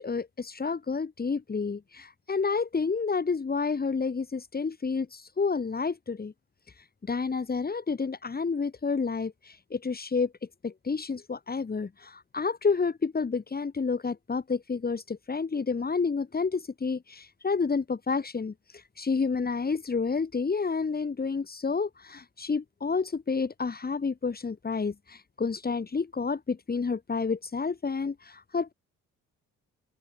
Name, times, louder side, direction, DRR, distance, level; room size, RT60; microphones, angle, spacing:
voice 1, 0.0-6.3 6.8-10.3 10.6-28.7, left 4 dB, 30° left, 3.9 m, -30 dB
open air
cardioid pair, 90°, 30 cm